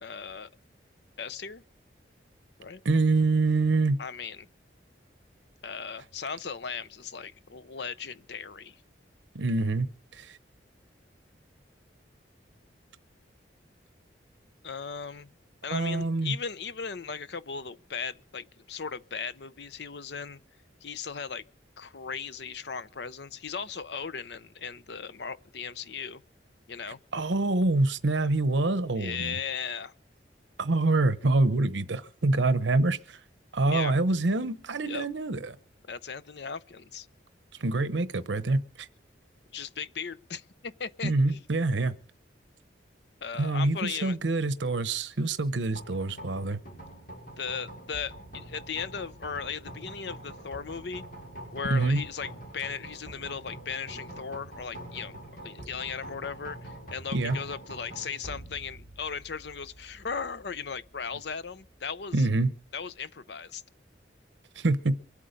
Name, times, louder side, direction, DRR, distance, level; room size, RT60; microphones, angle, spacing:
voice 1, 0.0-0.5 1.2-1.6 2.6-2.8 4.0-4.5 5.6-8.8 14.6-15.3 15.6-20.4 20.8-21.4 21.8-26.2 26.7-27.0 28.9-29.9 33.7-34.0 34.9-35.1 35.8-37.1 39.5-41.4 43.2-44.2 47.4-51.0 51.5-55.1 55.4-62.3 62.7-63.6, left 6 dB, 65° left, 0.7 m, -37 dB
voice 2, 2.8-4.0 9.3-9.9 10.1-10.4 15.7-16.4 27.1-29.4 30.6-33.2 33.5-35.5 37.6-38.9 41.0-41.9 43.4-46.6 51.7-52.0 57.1-57.4 62.1-62.5 64.6-65.0, right 2 dB, 80° right, 0.9 m, -26 dB
sound 1, 45.7-63.0, right 1 dB, 50° left, 7.3 m, -45 dB
24.5 x 8.5 x 5.2 m
head